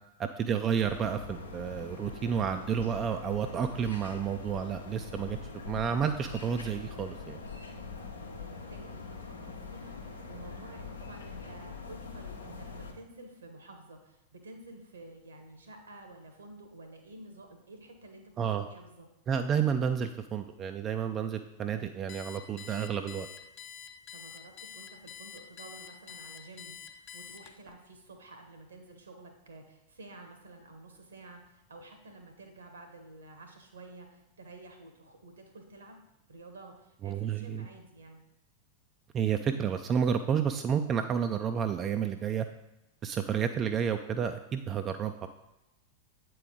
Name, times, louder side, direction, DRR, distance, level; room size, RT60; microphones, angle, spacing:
voice 1, 0.2-5.4 5.7-7.4 18.4-18.6 19.3-23.3 37.0-37.6 39.1-42.5 43.0-45.3, right 7 dB, 30° right, 7 dB, 0.3 m, -30 dB
sound 1, 0.8-12.9, left 4 dB, 75° left, 0.8 m, -43 dB
voice 2, 8.2-19.1 24.1-36.0 36.3-38.2, right 2 dB, 70° right, 5 dB, 1.2 m, -51 dB
Alarm, 22.1-27.7, left 8 dB, 40° left, 0.6 m, -46 dB
8.2 x 4.6 x 3.8 m, 0.93 s
figure-of-eight pair, 90°, 0 cm